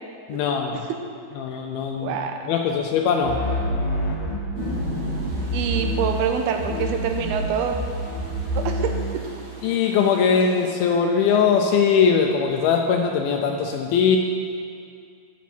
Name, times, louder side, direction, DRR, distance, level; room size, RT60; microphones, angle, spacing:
voice 1, 0.3-0.9 1.4-2.2 2.5-3.4 9.6-14.2, left 6 dB, 80° left, 2 dB, 2.3 m, -21 dB
voice 2, 2.0-2.4 5.5-7.9 8.6-9.2, right 6 dB, 85° right, 5 dB, 2.6 m, -26 dB
sound 1, 3.2-6.3 6.6-9.1, equal, 55° left, 1.4 m, -27 dB
Rain, 4.5-10.7, right 1 dB, 50° right, 3.4 m, -38 dB
15.5 x 7.1 x 4.3 m, 2.3 s
omnidirectional pair, 4.6 m